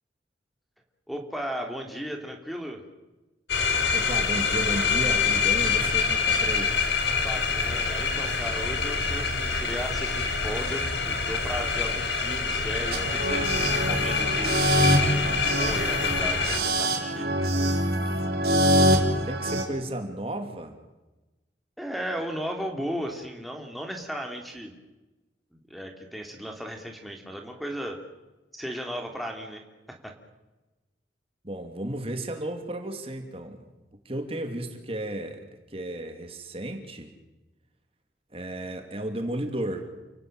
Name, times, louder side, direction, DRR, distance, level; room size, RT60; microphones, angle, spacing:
voice 1, 1.1-2.8 7.2-14.6 14.9-17.3 21.8-24.7 25.5-28.0 28.5-30.1, equal, ahead, 4 dB, 3.0 m, -35 dB
sound 1, 3.5-16.6, left 5 dB, 75° left, 3.4 m, -26 dB
voice 2, 3.9-6.8 19.3-20.7 31.4-33.7 34.0-35.4 35.7-37.1 38.3-39.9, right 1 dB, 35° right, 6 dB, 2.7 m, -33 dB
sound 2, 12.9-19.6, equal, 60° right, 4.2 m, -24 dB
29.5 x 18.0 x 9.1 m, 1.1 s
head